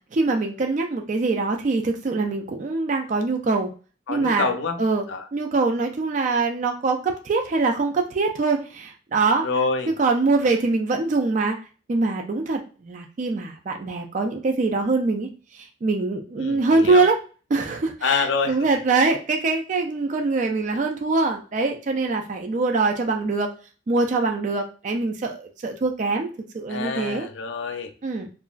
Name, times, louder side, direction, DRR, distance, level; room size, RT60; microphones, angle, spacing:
voice 1, 0.1-3.7 4.1-4.5 4.8-5.0 5.3-9.5 10.0-11.6 11.9-15.3 15.8-17.2 17.5-23.5 23.9-26.3 26.5-27.3 28.0-28.3, right 3 dB, 40° right, 3 dB, 0.3 m, -23 dB
voice 2, 4.1-4.8 5.1-5.3 9.4-9.9 16.4-17.1 18.0-18.6 26.7-27.9, left 4 dB, 90° left, 7 dB, 0.5 m, -26 dB
2.8 x 2.4 x 2.3 m, 0.36 s
head